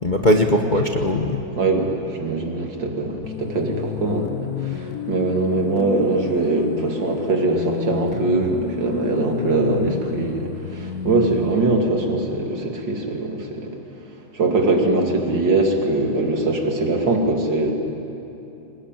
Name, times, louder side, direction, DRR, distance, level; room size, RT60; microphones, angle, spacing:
voice 1, 0.0-1.4, left 1 dB, 30° left, 3 dB, 1.0 m, -19 dB
voice 2, 1.6-13.8 14.3-17.7, right 2 dB, 65° right, 2 dB, 3.1 m, -22 dB
sound 1, 3.2-13.1, left 8 dB, 60° left, 1.1 m, -31 dB
25.0 x 20.0 x 9.1 m, 2.9 s
omnidirectional pair, 2.1 m